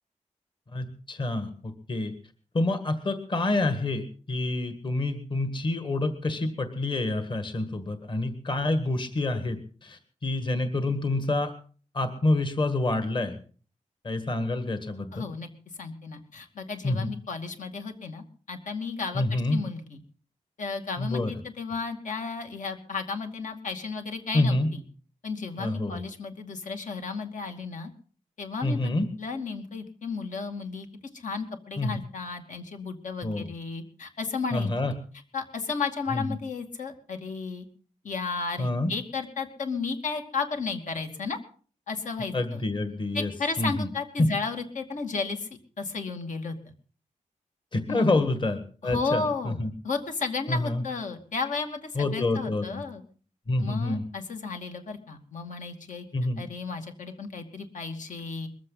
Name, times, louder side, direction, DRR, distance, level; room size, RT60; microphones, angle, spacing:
voice 1, 0.7-2.1 2.5-11.5 11.9-13.4 14.0-15.3 16.8-17.1 19.1-19.6 21.0-21.3 24.3-24.7 25.6-26.0 28.6-29.1 31.8-32.0 33.2-33.5 34.5-34.9 36.1-36.2 38.6-38.9 42.3-43.3 43.6-43.9 44.2-44.3 47.7-49.7 50.5-50.8 52.0-52.8 53.5-54.0 56.1-56.4, left 2 dB, 40° left, 8 dB, 1.8 m, -27 dB
voice 2, 15.1-15.5 15.8-20.0 20.6-24.8 25.2-27.9 28.4-30.9 31.1-34.9 35.3-37.6 38.0-41.4 41.9-42.6 43.1-45.5 45.8-46.6 47.9-48.3 48.8-49.6 49.8-53.0 53.6-56.0 56.4-58.5, left 4 dB, 75° left, 5 dB, 2.5 m, -33 dB
21.5 x 15.0 x 4.0 m, 0.41 s
wide cardioid pair, 155°, 13 cm